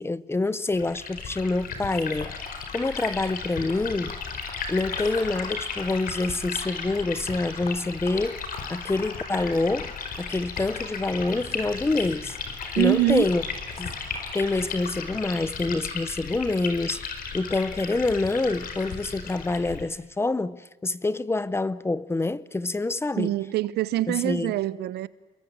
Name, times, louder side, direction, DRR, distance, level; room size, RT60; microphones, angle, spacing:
voice 1, 0.0-2.3 2.7-4.2 4.7-8.4 8.7-12.4 12.8-13.4 13.8-23.3 24.1-24.5, left 2 dB, 15° left, 0.8 m, -27 dB
Liquid, 0.7-19.8, left 5 dB, 55° left, 4.8 m, -35 dB
sound 1, 2.5-15.5, left 4 dB, 35° left, 4.1 m, -46 dB
voice 2, 12.7-13.3 23.2-25.1, right 16 dB, 75° right, 1.0 m, -24 dB
28.5 x 22.5 x 8.8 m
cardioid pair, 110°, 17 cm